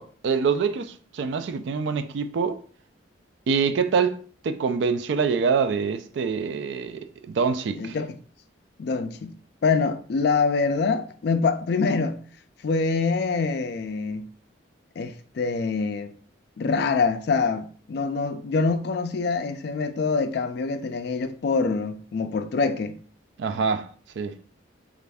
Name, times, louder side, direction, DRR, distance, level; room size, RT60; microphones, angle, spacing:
voice 1, 0.0-2.6 3.5-8.0 23.4-23.9 24.2-24.4, right 5 dB, 60° right, 0.3 m, -25 dB
voice 2, 7.8-8.1 8.8-9.3 9.6-12.2 12.6-14.3 15.0-16.1 16.6-23.0, left 4 dB, 55° left, 0.3 m, -25 dB
3.1 x 2.5 x 3.4 m
head